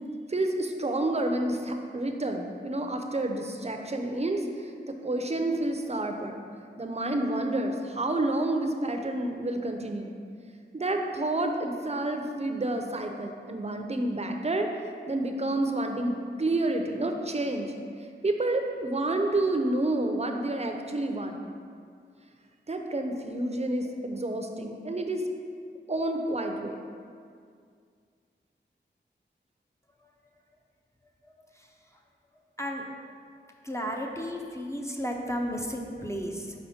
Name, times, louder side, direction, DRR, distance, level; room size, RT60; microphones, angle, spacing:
voice 1, 0.3-6.4 6.8-10.1 10.7-14.7 15.1-17.7 18.2-21.4 22.7-25.2 25.9-26.9, right 2 dB, 35° right, 4 dB, 0.6 m, -29 dB
voice 2, 33.6-36.5, equal, 15° left, 1 dB, 0.6 m, -33 dB
5.6 x 4.2 x 4.2 m, 2.2 s
wide cardioid pair, 65°, 20 cm